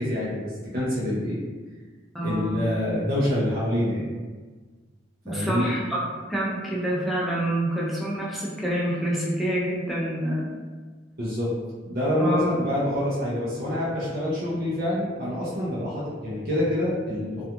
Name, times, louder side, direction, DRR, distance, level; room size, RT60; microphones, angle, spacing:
voice 1, 0.0-1.4 2.2-4.1 5.3-5.7 11.2-11.5 11.9-17.4, left 1 dB, 50° right, -8 dB, 0.6 m, -26 dB
voice 2, 2.1-2.6 5.2-6.0 6.3-10.5 12.2-12.5, right 1 dB, ahead, -6 dB, 0.5 m, -27 dB
2.4 x 2.3 x 2.8 m, 1.4 s
head